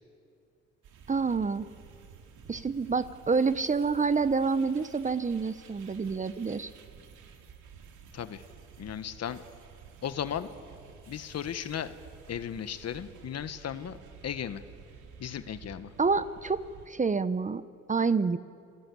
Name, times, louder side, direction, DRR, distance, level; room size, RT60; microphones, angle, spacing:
sound 1, 0.8-16.9, right 6 dB, 80° right, 2.4 m, -52 dB
voice 1, 1.1-1.7 2.5-6.7 16.0-17.6 17.9-18.4, right 4 dB, 25° right, 14 dB, 0.8 m, -28 dB
voice 2, 8.1-8.4 8.8-9.4 10.0-10.5 11.1-11.9 12.3-14.0 14.2-14.6 15.2-15.9, left 9 dB, 55° left, 11 dB, 1.4 m, -36 dB
28.0 x 19.0 x 8.5 m, 2.6 s
cardioid pair, 90°, 30 cm